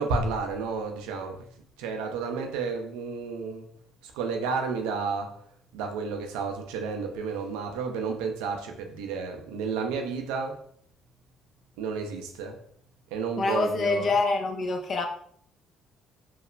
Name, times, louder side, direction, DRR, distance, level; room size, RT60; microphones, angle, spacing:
voice 1, 0.0-1.4 1.8-3.7 4.0-5.3 5.7-10.6 11.8-12.6 13.1-14.1, right 4 dB, 85° right, 0.4 m, -31 dB
voice 2, 13.4-15.1, left 3 dB, 50° left, 0.4 m, -26 dB
2.9 x 2.0 x 2.4 m
supercardioid pair, 65°, 0 cm